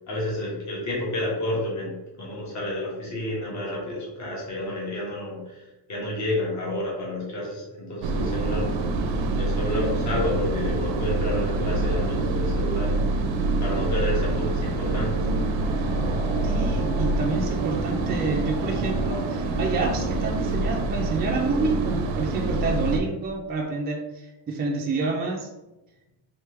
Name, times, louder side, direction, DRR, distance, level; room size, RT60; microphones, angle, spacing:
voice 1, 0.0-8.7 9.4-13.0 13.6-15.4, left 1 dB, 40° left, -5 dB, 1.3 m, -30 dB
sound 1, 8.0-23.0, right 3 dB, 85° right, 0.6 m, -26 dB
sound 2, 11.4-22.2, equal, 20° left, 0.9 m, -41 dB
voice 2, 16.4-25.5, right 3 dB, 25° right, -1 dB, 0.3 m, -28 dB
3.3 x 3.3 x 3.4 m, 1.0 s
cardioid pair, 155°, 44 cm